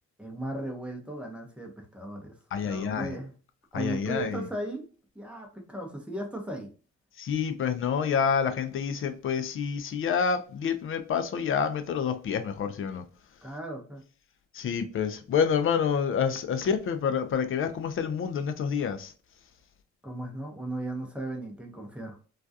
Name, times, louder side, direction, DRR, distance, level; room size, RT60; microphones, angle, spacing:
voice 1, 0.2-2.3 2.6-3.3 3.7-4.9 5.1-6.7 13.4-14.0 20.0-22.2, right 1 dB, 5° right, 0.7 m, -36 dB
voice 2, 2.5-3.2 3.7-4.5 7.2-13.0 14.5-19.1, left 7 dB, 45° left, 0.4 m, -28 dB
2.4 x 2.2 x 2.6 m
cardioid pair, 90°, 30 cm